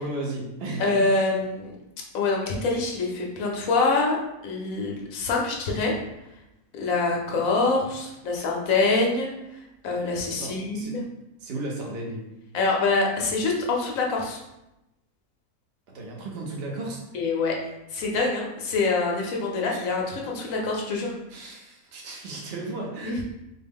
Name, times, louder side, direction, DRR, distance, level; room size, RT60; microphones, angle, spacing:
voice 1, 0.0-1.0 7.2-7.4 10.3-10.9 11.4-12.2 15.9-17.0 19.7-19.8 21.3-23.2, right 2 dB, 50° right, -1 dB, 0.8 m, -34 dB
voice 2, 0.8-1.7 2.1-4.2 4.4-5.9 6.7-9.3 9.8-11.0 12.5-14.4 17.1-17.6 17.9-21.1 23.0-23.2, left 3 dB, 65° left, -1 dB, 1.0 m, -25 dB
4.1 x 2.2 x 3.5 m, 0.92 s
omnidirectional pair, 1.7 m